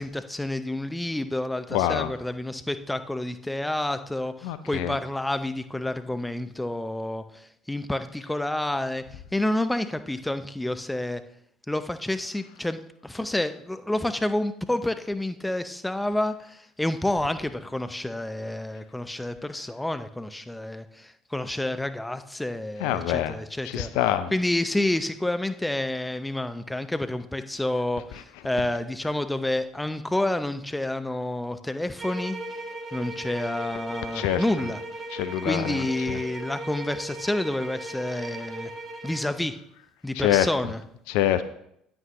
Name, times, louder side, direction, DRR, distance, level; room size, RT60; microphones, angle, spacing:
voice 1, 0.0-11.2 11.7-23.9 24.3-32.4 32.9-34.8 35.4-38.7 39.0-39.6 40.0-40.8, left 1 dB, 10° left, 10 dB, 0.6 m, -29 dB
voice 2, 1.7-2.1 4.4-5.0 22.8-23.3 23.6-24.3 34.1-34.4 35.1-36.2 40.2-40.5 41.1-41.4, left 12 dB, 65° left, 12 dB, 0.4 m, -25 dB
sound 1, 32.0-39.3, right 1 dB, 30° right, 1.5 m, -37 dB
9.1 x 8.7 x 3.0 m, 0.73 s
figure-of-eight pair, 60°, 0 cm